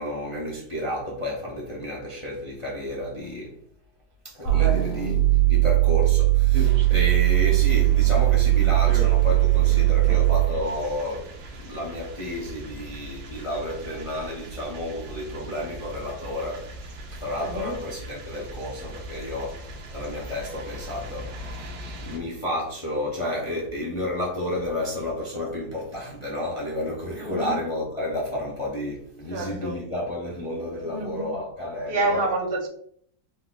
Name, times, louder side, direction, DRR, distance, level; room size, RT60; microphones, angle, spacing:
voice 1, 0.0-3.6 4.2-5.2 5.5-11.3 11.6-21.6 22.1-32.3, left 1 dB, 50° left, 0.3 m, -31 dB
voice 2, 4.4-4.9 17.4-17.8 27.2-27.6 29.3-29.8 30.8-31.3 31.9-32.7, right 2 dB, 50° right, 0.6 m, -28 dB
sound 1, 4.5-10.6, right 19 dB, 85° left, 1.5 m, -19 dB
sound 2, 6.5-22.2, right 1 dB, 75° right, 1.4 m, -38 dB
4.3 x 3.9 x 2.3 m
omnidirectional pair, 1.9 m